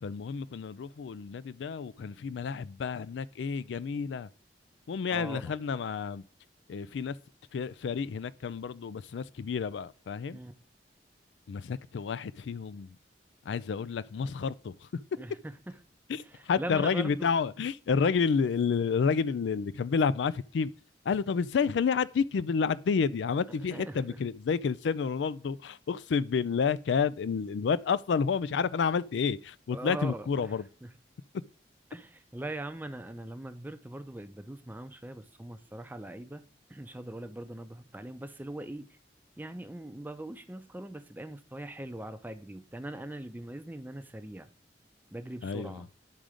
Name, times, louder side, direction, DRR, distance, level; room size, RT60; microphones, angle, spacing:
voice 1, 0.0-4.3 4.9-6.2 6.7-7.2 7.5-10.4 11.5-13.0 13.5-15.0 16.1-20.7 21.0-30.6 45.4-45.9, left 5 dB, 80° left, 0.4 m, -30 dB
voice 2, 5.1-5.5 10.3-10.5 15.2-15.3 15.7-15.8 16.1-17.3 23.7-24.2 29.7-30.5 30.8-30.9 31.9-36.4 36.7-38.9 39.4-44.5 45.1-45.9, right 1 dB, 10° right, 0.5 m, -41 dB
10.5 x 3.8 x 4.9 m
head